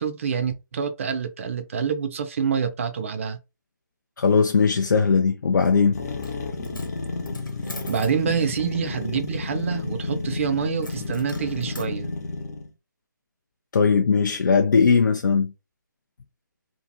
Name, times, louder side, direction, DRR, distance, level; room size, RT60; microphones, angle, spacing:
voice 1, 0.0-3.4 7.9-12.1, right 7 dB, 40° right, 0.4 m, -27 dB
voice 2, 4.2-6.0 13.7-15.5, left 5 dB, 70° left, 0.4 m, -19 dB
sound 1, 5.9-12.7, left 3 dB, 55° left, 0.8 m, -31 dB
Coin (dropping), 6.1-6.4 6.6-8.2 10.8-11.9, left 2 dB, 90° left, 1.1 m, -43 dB
2.6 x 2.5 x 2.7 m
figure-of-eight pair, 150°, 11 cm